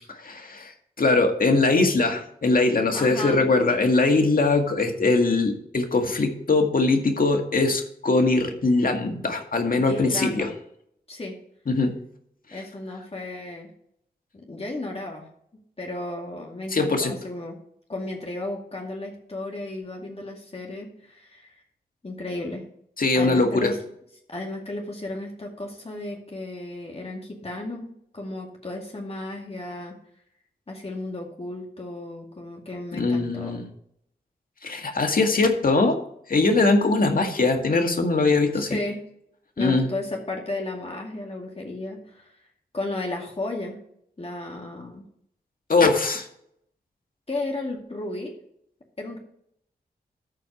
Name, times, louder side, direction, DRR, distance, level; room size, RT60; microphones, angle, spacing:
voice 1, 0.1-0.7 1.0-10.5 11.7-12.0 16.7-17.1 23.0-23.7 32.9-33.7 34.6-36.0 36.3-38.8 39.6-39.9 45.7-46.3, left 3 dB, 60° left, 4 dB, 2.0 m, -21 dB
voice 2, 2.9-3.4 9.9-10.5 11.1-11.4 12.5-13.7 14.3-15.3 15.8-17.6 17.9-21.5 22.0-22.6 23.1-23.8 24.3-30.0 30.7-33.6 38.5-39.0 39.6-42.3 42.7-43.8 44.2-45.0 47.3-48.3 49.0-49.2, left 2 dB, 35° left, -1 dB, 2.3 m, -34 dB
13.5 x 4.6 x 5.7 m, 0.71 s
cardioid pair, 55°, 17 cm